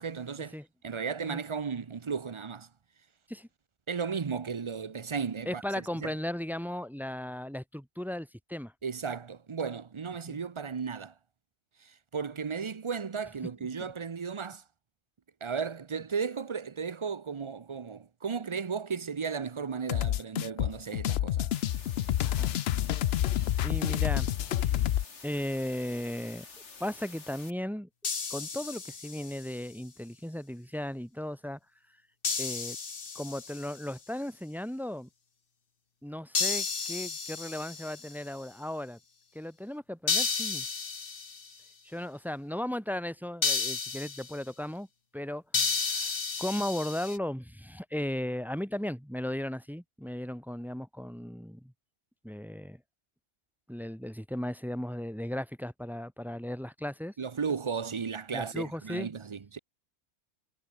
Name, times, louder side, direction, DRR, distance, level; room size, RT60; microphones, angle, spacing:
voice 1, 0.0-0.6 0.8-2.7 3.9-6.1 8.8-11.1 11.8-14.6 15.4-21.5 57.2-59.6, right 6 dB, 35° right, 0.6 m, -35 dB
voice 2, 5.5-8.7 10.3-10.4 13.8-13.9 22.2-22.6 23.2-23.3 23.6-24.8 25.2-26.5 26.8-27.9 28.3-31.6 32.4-32.8 33.1-35.1 36.0-39.0 39.3-40.7 41.8-44.9 45.1-45.4 45.8-46.1 46.4-51.7 52.2-52.8 53.7-57.1 58.3-59.1, left 1 dB, ahead, 0.8 m, -36 dB
sound 1, 19.9-25.0, left 12 dB, 70° left, 0.8 m, -28 dB
sound 2, 21.5-27.5, left 4 dB, 90° left, 2.6 m, -49 dB
sound 3, 28.0-29.5 32.2-33.8 36.3-38.2 40.1-41.5 43.4-44.4 45.5-47.2, left 5 dB, 55° left, 1.7 m, -32 dB
omnidirectional pair, 1.2 m